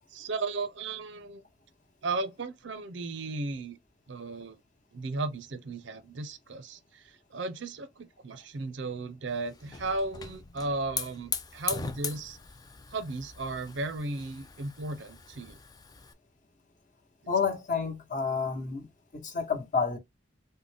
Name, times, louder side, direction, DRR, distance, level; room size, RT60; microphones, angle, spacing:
voice 1, 0.1-1.4 2.0-3.8 4.1-4.6 4.9-12.4 12.9-15.6, right 3 dB, 65° right, 0.5 m, -35 dB
Hiss / Fire, 9.3-16.1, left 6 dB, 20° left, 0.3 m, -40 dB
voice 2, 17.3-18.9 19.1-20.0, left 5 dB, 40° left, 1.0 m, -29 dB
3.8 x 2.1 x 3.3 m
head